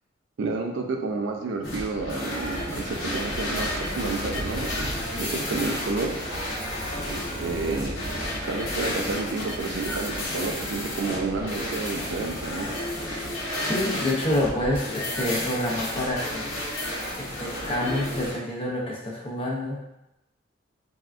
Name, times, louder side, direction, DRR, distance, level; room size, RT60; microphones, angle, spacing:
voice 1, 0.4-6.1 7.1-8.0 8.5-12.7, right 3 dB, 75° right, 3 dB, 0.4 m, -30 dB
sound 1, 1.6-18.4, left 1 dB, 75° left, 0.9 m, -32 dB
sound 2, 2.4-13.5, equal, 15° right, 0.6 m, -38 dB
voice 2, 13.7-16.6 17.2-19.8, left 1 dB, 25° left, -3 dB, 0.5 m, -27 dB
3.4 x 2.2 x 2.4 m, 0.90 s
head